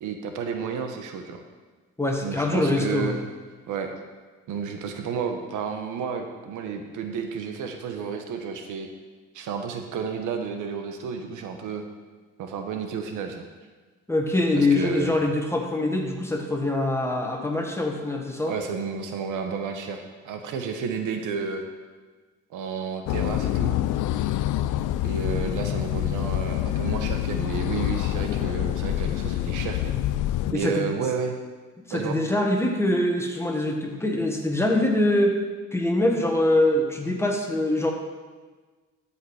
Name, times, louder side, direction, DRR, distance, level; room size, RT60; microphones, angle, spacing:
voice 1, 0.0-1.4 2.2-3.2 3.7-3.9 4.5-8.9 9.3-11.8 12.4-13.5 14.5-15.2 18.5-21.6 22.5-23.8 25.0-29.9 30.5-31.3 31.9-32.2, right 6 dB, 85° right, 5 dB, 1.1 m, -31 dB
voice 2, 2.0-3.2 14.1-18.5 30.5-30.9 31.9-35.4 35.7-37.9, left 1 dB, 10° left, 1 dB, 1.6 m, -24 dB
sound 1, 23.1-30.5, left 13 dB, 85° left, 0.5 m, -26 dB
13.0 x 5.6 x 4.9 m, 1.4 s
cardioid pair, 90°, 30 cm